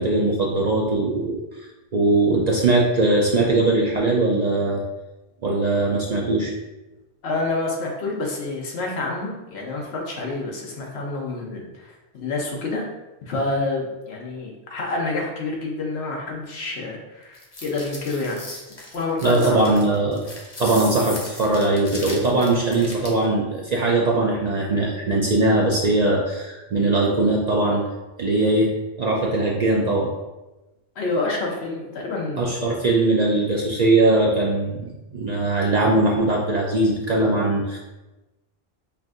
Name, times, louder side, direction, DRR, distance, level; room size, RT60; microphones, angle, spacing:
voice 1, 0.0-4.8 5.4-6.5 19.2-20.2 20.6-27.8 28.2-28.7 29.0-30.1 32.4-34.8 35.1-37.8, right 2 dB, 50° right, -3 dB, 0.5 m, -20 dB
voice 2, 7.2-12.9 13.3-18.4 18.9-19.6 31.0-32.4, left 3 dB, 80° left, -1 dB, 1.0 m, -28 dB
sound 1, 17.3-23.2, left 2 dB, 40° left, 0.8 m, -37 dB
5.6 x 2.6 x 2.5 m, 1.1 s
omnidirectional pair, 1.1 m